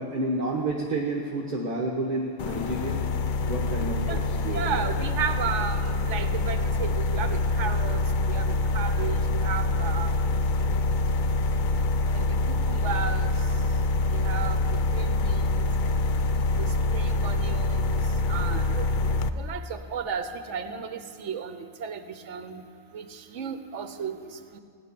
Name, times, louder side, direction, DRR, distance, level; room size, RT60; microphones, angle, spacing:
voice 1, 0.0-3.0 3.5-4.9, right 2 dB, 35° right, -2 dB, 1.3 m, -30 dB
sound 1, 2.4-19.3, left 2 dB, 65° left, 0.5 m, -25 dB
voice 2, 4.5-8.0 8.3-10.1 12.1-12.4 12.7-13.3 14.1-15.7 16.6-18.0 18.3-18.9 19.4-22.6 22.9-24.2 24.5-24.6, right 6 dB, 65° right, 9 dB, 1.1 m, -34 dB
16.5 x 9.9 x 6.8 m, 2.4 s
omnidirectional pair, 1.4 m